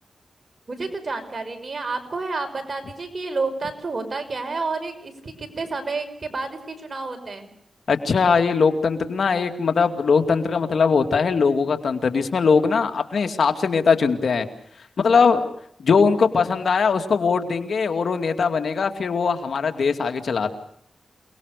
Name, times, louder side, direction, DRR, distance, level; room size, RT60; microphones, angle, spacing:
voice 1, 0.7-7.5, right 3 dB, 50° right, 7 dB, 5.8 m, -30 dB
voice 2, 7.9-14.5 15.0-15.4 15.8-20.5, left 5 dB, 75° left, 7 dB, 2.5 m, -20 dB
28.5 x 20.0 x 6.7 m, 0.70 s
cardioid pair, 60°, 0 cm